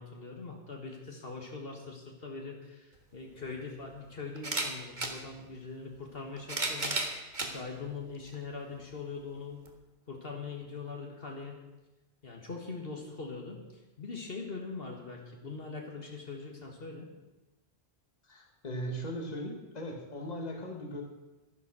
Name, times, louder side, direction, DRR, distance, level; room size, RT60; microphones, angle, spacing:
voice 1, 0.0-7.0 7.4-9.6 10.1-11.6 12.2-13.6 14.0-17.1, left 4 dB, 65° left, 1 dB, 1.9 m, -42 dB
sound 1, 3.0-3.1 4.4-5.2 6.2-7.5 8.3-8.4 9.7-9.8, right 2 dB, 45° right, 1.6 m, -33 dB
voice 2, 18.2-21.0, equal, 40° left, 1 dB, 1.9 m, -38 dB
11.5 x 10.5 x 6.1 m, 1.1 s
omnidirectional pair, 1.1 m